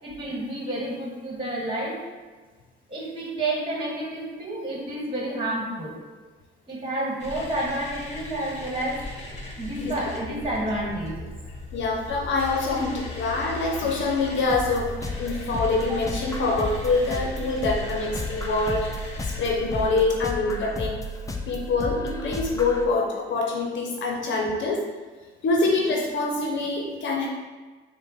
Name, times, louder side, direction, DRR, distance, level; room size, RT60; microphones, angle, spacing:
voice 1, 0.0-1.9 2.9-5.9 6.7-9.0 9.6-11.3 15.9-16.0, right 1 dB, 25° right, -3 dB, 1.5 m, -30 dB
sound 1, 7.2-19.9, left 2 dB, 35° left, 1.1 m, -38 dB
voice 2, 11.7-14.9 15.2-19.1 19.4-21.0 21.5-24.8 25.4-27.3, left 3 dB, 70° left, -1 dB, 0.7 m, -25 dB
sound 2, 14.5-22.8, left 1 dB, 15° left, 0.5 m, -33 dB
5.1 x 2.2 x 4.2 m, 1.3 s
cardioid pair, 90°, 20 cm